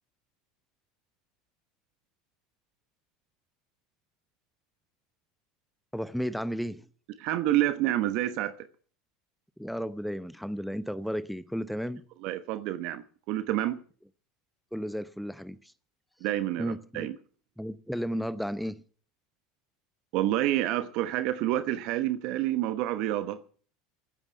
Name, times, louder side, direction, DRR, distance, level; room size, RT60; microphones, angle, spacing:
voice 1, 5.9-6.9 9.6-12.0 14.7-15.7 16.6-17.1 17.6-18.8, equal, ahead, 0.8 m, -33 dB
voice 2, 7.2-8.7 12.2-13.8 16.2-17.2 20.1-23.4, right 14 dB, 60° right, 1.0 m, -28 dB
15.0 x 8.9 x 9.6 m
hypercardioid pair, 80°, 0 cm